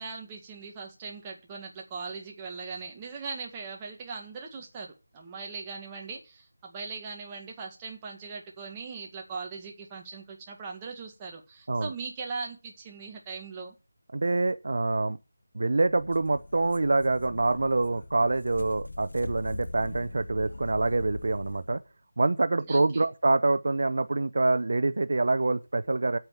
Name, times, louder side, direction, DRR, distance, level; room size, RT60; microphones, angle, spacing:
voice 1, 0.0-13.8 22.7-23.1, right 4 dB, 15° right, 1.8 m, -40 dB
voice 2, 14.1-15.2 15.5-21.8 22.2-26.2, right 2 dB, 60° right, 0.7 m, -26 dB
sound 1, 15.9-21.8, left 2 dB, 75° left, 1.1 m, -42 dB
8.9 x 7.2 x 7.5 m
figure-of-eight pair, 170°, 0 cm